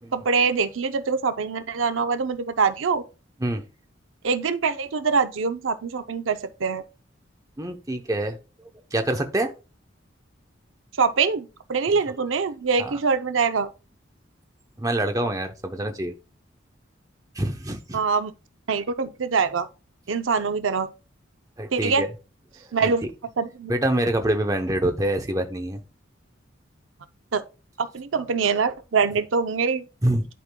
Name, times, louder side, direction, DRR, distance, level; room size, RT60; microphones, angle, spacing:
voice 1, 0.1-3.0 4.2-6.8 11.0-13.7 17.9-18.3 18.7-19.7 20.1-20.9 21.7-22.0 22.7-23.1 23.4-23.7 27.3-27.4 27.8-29.8, right 5 dB, 85° right, 0.6 m, -24 dB
voice 2, 7.6-8.4 8.9-9.5 12.8-13.0 14.8-16.1 17.3-18.0 21.6-22.1 22.8-22.9 23.7-25.8 30.0-30.3, right 1 dB, 20° right, 0.8 m, -25 dB
11.0 x 5.0 x 2.2 m
head